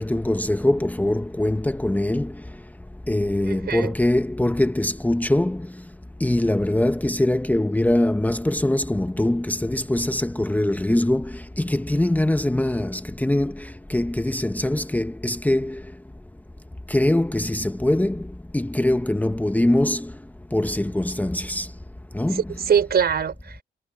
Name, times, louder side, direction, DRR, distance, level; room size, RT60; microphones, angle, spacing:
voice 1, 0.0-2.4 3.1-5.7 6.2-15.8 16.9-20.1 20.5-21.7 22.1-22.4, left 1 dB, 10° left, 0.9 m, -23 dB
voice 2, 3.4-3.9 22.3-23.6, right 7 dB, 70° right, 5.8 m, -23 dB
cardioid pair, 75°, 17 cm